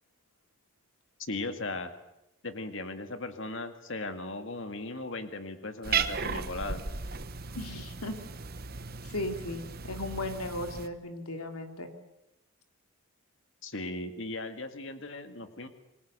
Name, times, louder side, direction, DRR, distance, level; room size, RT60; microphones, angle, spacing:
voice 1, 1.3-1.9 2.4-6.8 13.6-15.7, left 2 dB, 60° left, 8 dB, 2.0 m, -37 dB
Cat, 5.8-10.9, right 5 dB, 45° right, 1.1 m, -35 dB
voice 2, 7.6-8.2 9.0-11.9, left 1 dB, 90° left, 5 dB, 3.3 m, -36 dB
28.0 x 21.5 x 6.8 m, 0.87 s
head